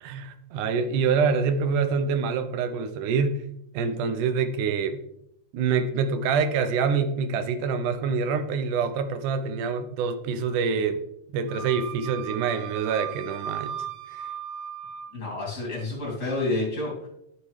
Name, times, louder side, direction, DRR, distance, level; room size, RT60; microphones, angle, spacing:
voice 1, 0.0-3.4 3.7-5.0 5.5-11.0 11.3-13.8 14.1-14.2, right 5 dB, 85° right, 9 dB, 2.2 m, -26 dB
Wind instrument woodwind instrument, 11.5-15.1, right 8 dB, 65° right, 2.2 m, -36 dB
voice 2, 15.1-17.1, left 2 dB, 30° left, -4 dB, 2.8 m, -29 dB
10.5 x 6.3 x 3.2 m, 0.78 s
omnidirectional pair, 3.5 m